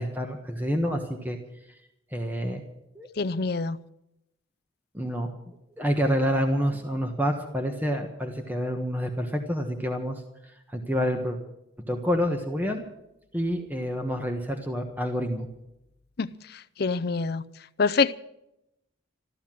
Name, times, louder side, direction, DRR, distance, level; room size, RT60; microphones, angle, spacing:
voice 1, 0.0-1.4 2.1-2.6 2.9-3.1 4.9-5.3 5.8-10.2 10.7-11.4 11.9-12.8 13.3-15.5, equal, 10° right, 1.3 m, -28 dB
voice 2, 3.2-3.8 16.2-16.3 16.8-17.4 17.8-18.1, left 4 dB, 50° left, 0.5 m, -25 dB
14.5 x 13.0 x 7.5 m
head